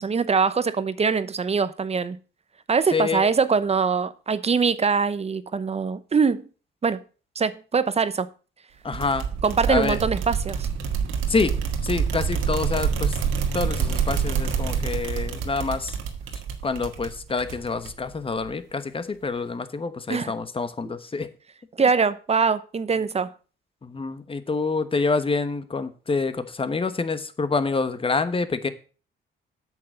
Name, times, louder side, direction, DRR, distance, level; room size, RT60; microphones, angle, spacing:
voice 1, 0.0-2.2 2.7-6.4 6.8-7.0 7.4-8.3 9.4-10.7 20.1-20.3 21.8-23.3, right 5 dB, 30° right, 0.8 m, -23 dB
voice 2, 2.9-3.2 8.8-9.3 9.7-10.0 11.3-11.5 11.8-13.2 13.5-16.0 16.6-21.3 23.8-28.7, left 4 dB, 25° left, 1.2 m, -27 dB
sound 1, 8.9-18.2, right 6 dB, 90° right, 1.8 m, -27 dB
8.6 x 6.5 x 6.7 m
cardioid pair, 90°, 20 cm